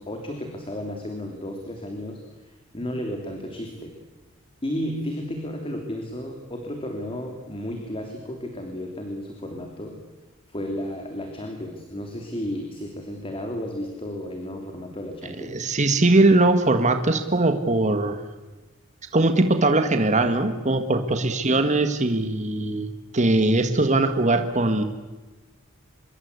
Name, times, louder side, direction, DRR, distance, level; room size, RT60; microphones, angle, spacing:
voice 1, 0.0-3.9 4.6-10.0 10.5-15.6, left 1 dB, 25° left, 3 dB, 3.2 m, -33 dB
voice 2, 15.4-18.2 19.1-22.9 23.1-24.8, right 2 dB, 35° right, 7 dB, 1.8 m, -20 dB
26.0 x 22.5 x 8.3 m, 1.2 s
head